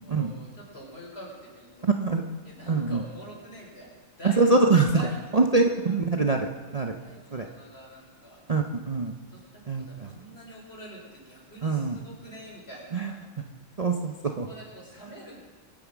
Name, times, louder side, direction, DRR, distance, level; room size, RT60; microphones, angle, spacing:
voice 1, 0.0-2.0 2.4-4.6 4.9-6.0 6.9-8.4 9.3-13.1 14.5-15.4, right 1 dB, 50° left, -2 dB, 4.8 m, -45 dB
voice 2, 1.8-2.2 2.7-3.0 4.2-5.0 5.3-6.9 7.3-7.5 8.5-9.1 9.7-10.1 11.6-12.0 12.9-13.1 13.8-14.5, right 3 dB, 35° right, 3 dB, 0.8 m, -24 dB
24.0 x 8.9 x 6.1 m, 1.3 s
omnidirectional pair, 1.4 m